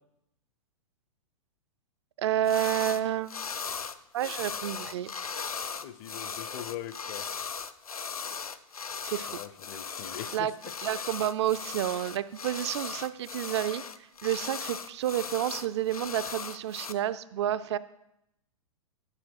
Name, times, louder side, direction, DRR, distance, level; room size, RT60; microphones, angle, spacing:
voice 1, 2.2-3.3 4.1-5.1 9.0-9.3 10.3-10.5 10.8-13.8 14.2-17.8, right 12 dB, 50° right, 13 dB, 0.4 m, -30 dB
sound 1, 2.4-3.0 3.3-16.9, left 6 dB, 85° left, 0.5 m, -38 dB
voice 2, 5.8-7.3 9.3-10.7, left 11 dB, 35° left, 14 dB, 0.5 m, -41 dB
9.7 x 5.6 x 4.5 m, 0.82 s
figure-of-eight pair, 105°, 18 cm